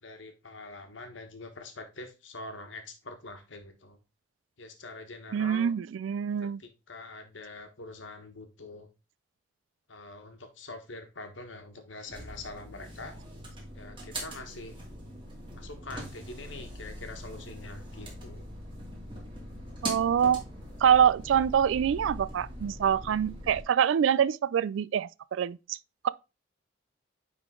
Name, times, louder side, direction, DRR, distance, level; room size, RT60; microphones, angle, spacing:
voice 1, 0.0-4.0 4.6-5.7 6.4-8.9 9.9-13.1 13.7-14.8 15.5-18.4, left 2 dB, 75° left, 1.4 m, -44 dB
voice 2, 5.3-6.6 19.8-20.4 20.8-25.8 26.0-26.1, right 8 dB, 75° right, 0.3 m, -25 dB
sound 1, 12.1-23.6, right 1 dB, 25° right, 2.2 m, -42 dB
9.5 x 3.8 x 3.7 m
head